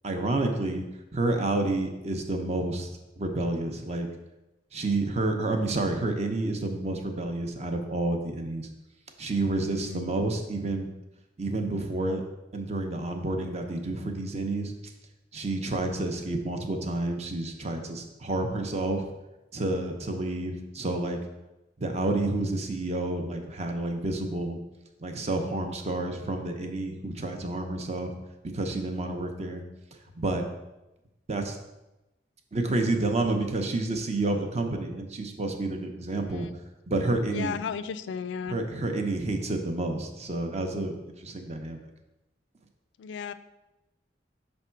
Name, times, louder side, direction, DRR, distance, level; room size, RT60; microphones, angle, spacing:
voice 1, 0.0-0.8 1.1-2.9 3.2-4.1 4.7-8.7 9.2-10.9 11.4-12.2 12.5-14.7 15.3-19.1 19.5-21.2 21.8-24.6 25.0-28.1 28.5-29.6 30.1-30.5 31.3-31.6 32.5-36.5 36.9-37.6 38.5-40.9 41.2-41.8, right 2 dB, 35° right, 5 dB, 0.7 m, -29 dB
voice 2, 9.7-10.1 36.3-36.5 37.3-38.6 43.0-43.3, left 6 dB, 85° left, 13 dB, 0.3 m, -34 dB
5.3 x 3.5 x 5.7 m, 0.98 s
head